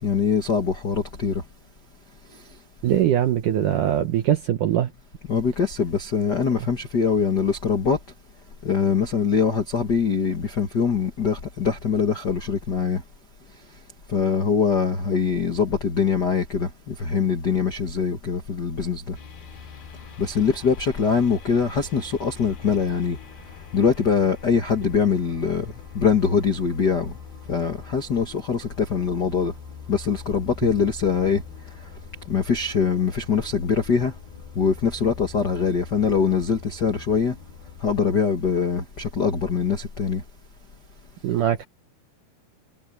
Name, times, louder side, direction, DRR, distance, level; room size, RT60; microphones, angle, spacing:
voice 1, 0.0-1.4 2.3-2.6 5.3-8.0 8.6-13.0 14.1-19.2 20.2-23.2 23.7-27.2 27.5-29.5 29.9-31.9 32.2-34.1 34.5-37.4 37.8-40.2, left 6 dB, 80° left, 0.9 m, -23 dB
voice 2, 2.8-4.9 41.2-41.6, right 11 dB, 75° right, 1.9 m, -21 dB
sound 1, 19.1-37.8, left 6 dB, 65° left, 4.9 m, -43 dB
omnidirectional pair, 4.9 m